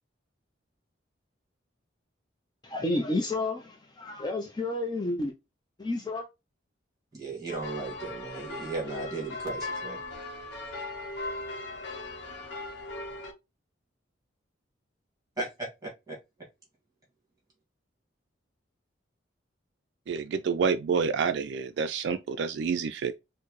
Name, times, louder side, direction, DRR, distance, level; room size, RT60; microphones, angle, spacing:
voice 1, 2.6-5.3 5.8-6.3, left 2 dB, 20° left, 0.4 m, -30 dB
voice 2, 7.1-10.0 15.4-16.2, right 3 dB, 20° right, 1.8 m, -36 dB
sound 1, 7.5-13.3, left 2 dB, 60° left, 0.8 m, -38 dB
voice 3, 20.1-23.1, right 5 dB, 60° right, 0.3 m, -28 dB
4.5 x 2.0 x 3.0 m
head